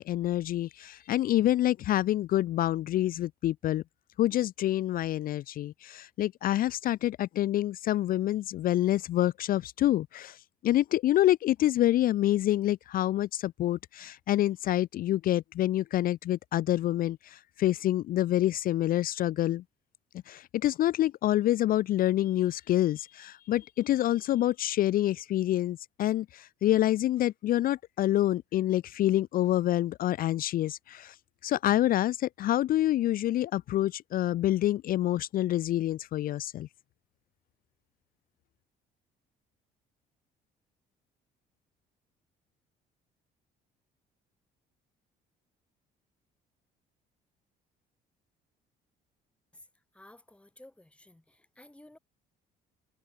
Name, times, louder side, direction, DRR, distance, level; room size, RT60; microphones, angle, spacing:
voice 1, 0.0-3.8 4.2-19.6 20.3-31.2 31.4-36.7, left 13 dB, 60° left, 0.6 m, -27 dB
voice 2, 49.9-52.0, left 1 dB, 5° left, 4.7 m, -54 dB
cardioid pair, 110°, 17 cm